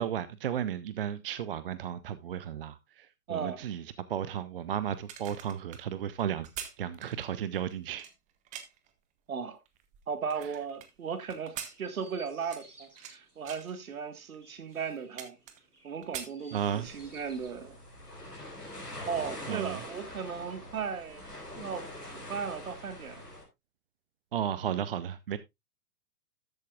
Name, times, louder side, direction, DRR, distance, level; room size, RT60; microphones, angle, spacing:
voice 1, 0.0-3.8 4.1-6.5 6.8-8.1 16.5-16.9 19.5-19.8 24.3-25.4, right 9 dB, 40° right, 0.5 m, -34 dB
voice 2, 3.3-3.6 9.3-9.6 10.1-15.4 15.8-17.8 19.0-23.2, right 6 dB, 65° right, 1.8 m, -37 dB
sound 1, 4.9-8.9 9.5-10.9 11.3-13.2 13.4-13.7 14.3-14.4 14.7-15.8 16.0-17.0 17.4-17.6, right 9 dB, 15° right, 0.9 m, -44 dB
Chirp tweet, 10.6-17.6, right 1 dB, 80° right, 3.5 m, -59 dB
sound 2, 16.6-23.4, left 1 dB, 90° left, 4.3 m, -44 dB
13.0 x 8.4 x 2.4 m
figure-of-eight pair, 115°, 46 cm